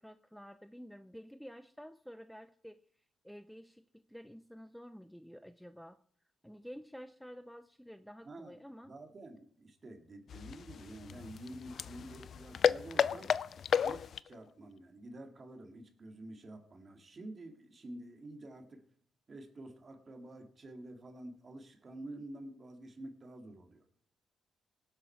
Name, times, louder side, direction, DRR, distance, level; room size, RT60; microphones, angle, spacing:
voice 1, 0.0-2.8 3.2-6.0 6.4-8.9, equal, ahead, 11 dB, 0.5 m, -50 dB
voice 2, 8.2-13.3 13.8-18.8 19.3-23.8, right 1 dB, 35° right, 5 dB, 2.3 m, -49 dB
sound 1, 10.3-14.4, left 7 dB, 55° left, 0.5 m, -33 dB
18.5 x 8.1 x 4.6 m, 0.64 s
cardioid pair, 90°, 0 cm